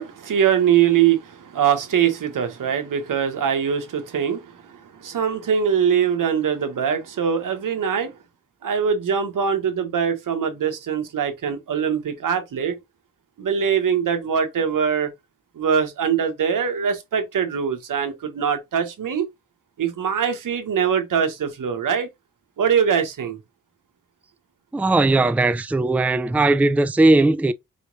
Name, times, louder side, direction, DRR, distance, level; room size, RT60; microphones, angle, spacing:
voice 1, 0.0-8.1 8.6-12.8 13.4-15.1 15.6-19.2 19.8-22.1 22.6-23.4, right 7 dB, 80° right, 1.2 m, -22 dB
voice 2, 24.7-27.5, right 2 dB, 5° right, 0.4 m, -18 dB
4.9 x 3.0 x 2.7 m
cardioid pair, 50°, 32 cm